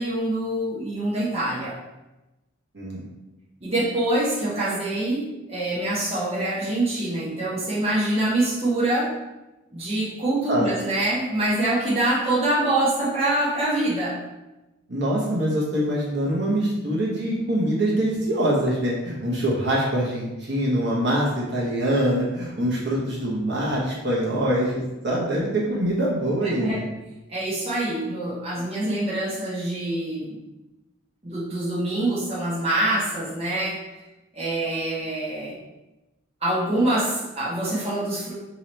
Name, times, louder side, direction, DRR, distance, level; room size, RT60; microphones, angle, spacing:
voice 1, 0.0-1.8 3.6-9.1 9.7-14.2 26.4-26.9 27.3-30.4 31.2-33.8 34.3-35.6 36.4-38.3, right 1 dB, 30° right, -7 dB, 1.0 m, -25 dB
voice 2, 14.9-26.8, right 1 dB, 55° right, -5 dB, 1.1 m, -24 dB
5.5 x 3.0 x 3.2 m, 1.0 s
head